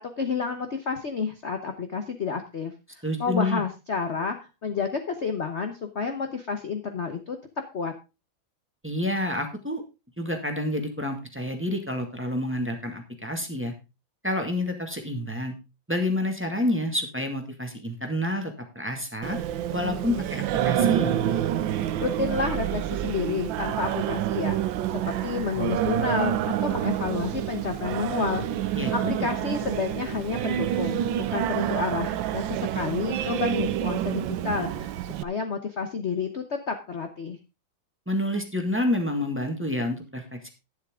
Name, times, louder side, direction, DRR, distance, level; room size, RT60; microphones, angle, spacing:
voice 1, 0.2-4.4 4.6-7.4 7.7-7.9 22.0-34.9 35.2-37.4, left 5 dB, 45° left, 6 dB, 1.1 m, -30 dB
voice 2, 3.0-3.6 8.8-9.8 10.2-13.7 14.2-15.5 15.9-19.4 19.7-21.2 28.7-29.3 38.1-40.5, left 1 dB, 5° right, 4 dB, 1.8 m, -29 dB
Singing, 19.2-35.2, right 11 dB, 75° right, 1.4 m, -28 dB
11.5 x 10.5 x 3.7 m, 0.28 s
omnidirectional pair, 2.1 m